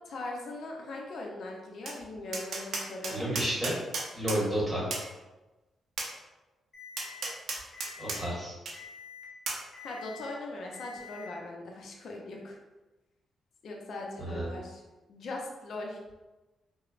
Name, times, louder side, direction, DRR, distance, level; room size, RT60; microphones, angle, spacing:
voice 1, 0.1-3.3 9.8-12.6 13.6-14.8 15.1-16.0, left 2 dB, 65° left, 0 dB, 0.5 m, -40 dB
Tap, 1.9-2.0 2.3-4.4 4.9-5.1 6.0-6.1 7.0-8.2 8.7-8.8 9.5-9.6, right 3 dB, 70° right, 0.5 m, -34 dB
voice 2, 3.1-3.7 4.1-4.9 8.0-8.5 14.2-14.6, right 1 dB, 5° right, -6 dB, 1.3 m, -31 dB
Alarm, 6.7-7.2 7.7-8.2 8.7-9.2 9.7-10.2 10.7-11.2, left 7 dB, 50° left, 0.9 m, -47 dB
2.9 x 2.0 x 2.4 m, 1.1 s
supercardioid pair, 55°, 0 cm